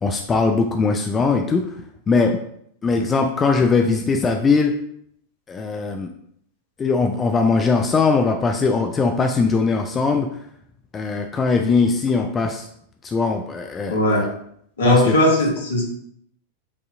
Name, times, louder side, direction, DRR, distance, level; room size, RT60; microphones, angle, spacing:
voice 1, 0.0-1.7 2.1-2.4 2.8-4.7 5.5-6.1 6.8-10.3 10.9-12.7 13.0-14.3 14.8-15.1, left 4 dB, 20° left, 4 dB, 0.3 m, -20 dB
voice 2, 13.9-14.3 14.8-15.8, left 1 dB, 65° left, -1 dB, 1.2 m, -17 dB
5.2 x 2.8 x 2.5 m, 0.68 s
figure-of-eight pair, 90°, 0 cm